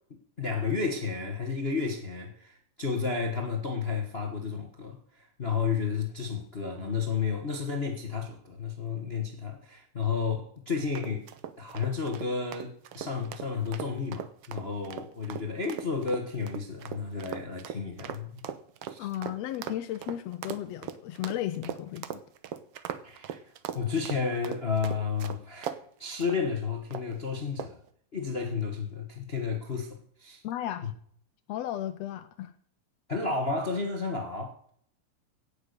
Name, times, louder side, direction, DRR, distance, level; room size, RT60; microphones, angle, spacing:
voice 1, 0.4-11.2 11.6-18.5 18.9-19.1 23.0-23.4 23.7-27.8 28.1-30.4 30.8-30.9 33.1-34.6, left 5 dB, 50° left, 3 dB, 0.7 m, -32 dB
sound 1, 10.9-25.8 26.2-26.4 26.9-27.2 27.6-27.9, right 10 dB, 75° right, 1.3 m, -39 dB
voice 2, 19.0-22.2 30.4-30.9 31.5-32.5, left 12 dB, 80° left, 11 dB, 1.5 m, -34 dB
17.0 x 7.1 x 6.7 m, 0.62 s
omnidirectional pair, 3.9 m